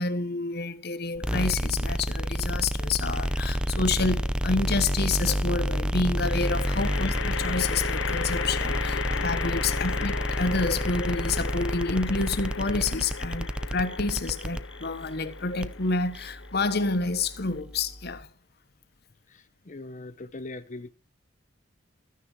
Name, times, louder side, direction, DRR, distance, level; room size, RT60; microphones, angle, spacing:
voice 1, 0.0-18.3, left 3 dB, 55° left, 1.4 m, -29 dB
sound 1, 1.2-18.2, equal, 5° right, 0.7 m, -30 dB
sound 2, 3.1-3.7 6.2-17.6, left 6 dB, 85° left, 0.8 m, -36 dB
voice 2, 19.3-20.9, left 2 dB, 40° left, 0.8 m, -41 dB
14.0 x 10.0 x 4.6 m
head